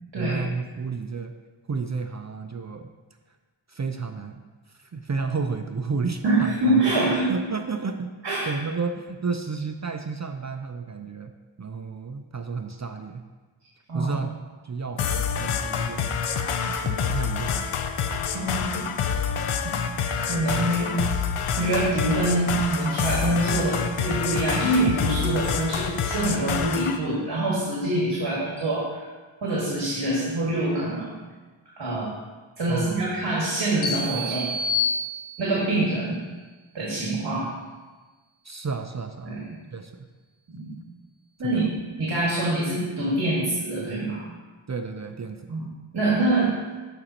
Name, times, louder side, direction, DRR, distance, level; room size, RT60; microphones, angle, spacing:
voice 1, 0.1-1.3 1.7-2.9 3.7-4.4 4.8-6.5 7.3-8.1 8.5-11.3 11.6-13.2 13.9-14.3 14.6-16.1 16.7-17.7 32.7-33.3 38.4-39.4 39.7-40.1 41.4-41.6 44.7-45.5, right 4 dB, 35° right, 6 dB, 0.5 m, -31 dB
voice 2, 6.2-7.4 8.2-8.5 13.9-14.2 18.3-18.9 19.6-19.8 20.2-20.9 21.5-29.0 29.4-31.2 31.8-32.1 32.6-34.5 35.4-36.2 36.7-37.5 39.2-39.4 40.5-40.7 41.4-44.2 45.5-45.6 45.9-46.6, right 2 dB, 55° right, -6 dB, 1.9 m, -25 dB
sound 1, 15.0-27.0, left 7 dB, 85° left, 0.7 m, -27 dB
sound 2, 33.8-35.7, left 3 dB, 70° left, 1.0 m, -28 dB
13.5 x 5.1 x 2.9 m, 1.3 s
wide cardioid pair, 100°, 50 cm